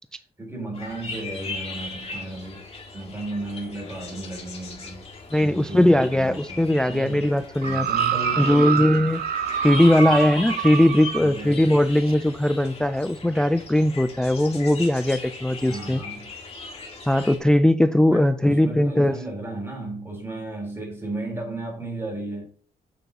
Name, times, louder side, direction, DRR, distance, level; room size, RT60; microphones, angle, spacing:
voice 1, 0.4-2.7 2.9-5.0 5.4-6.6 6.9-7.3 7.6-8.8 11.2-11.6 15.7-16.3 18.1-22.4, right 2 dB, 15° right, 3.8 m, -34 dB
sound 1, 0.7-17.4, left 4 dB, 35° left, 2.1 m, -38 dB
voice 2, 5.3-7.9 8.4-16.0 17.1-19.2, left 1 dB, 5° left, 0.3 m, -20 dB
sound 2, 7.6-11.3 12.1-12.2, right 9 dB, 65° right, 0.6 m, -26 dB
8.3 x 6.9 x 2.9 m
cardioid pair, 120°, 17 cm